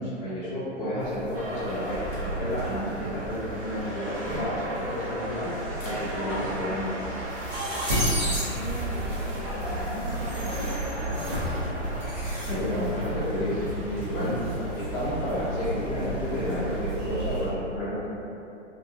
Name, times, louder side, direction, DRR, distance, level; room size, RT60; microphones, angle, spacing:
voice 1, 0.0-5.5 5.8-7.1 12.4-18.1, equal, 20° left, -11 dB, 0.9 m, -31 dB
sound 1, 1.0-17.5, right 1 dB, 25° right, 0.5 m, -33 dB
sound 2, 1.3-16.8, equal, 45° right, 0.8 m, -37 dB
sound 3, 1.9-9.9, equal, 80° left, 0.7 m, -47 dB
voice 2, 8.0-11.5, right 1 dB, 45° left, -12 dB, 0.7 m, -39 dB
2.6 x 2.1 x 2.3 m, 2.7 s
hypercardioid pair, 125°, 37 cm